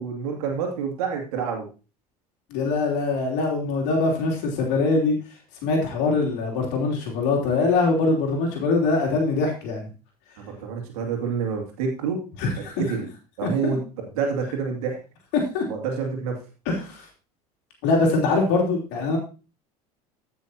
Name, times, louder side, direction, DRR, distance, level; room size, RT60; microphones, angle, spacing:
voice 1, 0.0-1.7 10.4-12.2 12.8-13.1 13.4-13.8 14.1-15.0 15.7-16.4, right 6 dB, 70° right, 2 dB, 2.5 m, -27 dB
voice 2, 2.5-5.1 5.6-9.9 12.4-12.8 13.4-13.8 15.3-15.6 16.6-17.1 17.8-19.2, left 3 dB, 60° left, 0 dB, 3.1 m, -23 dB
15.0 x 6.3 x 2.9 m, 0.33 s
hypercardioid pair, 70°, 20 cm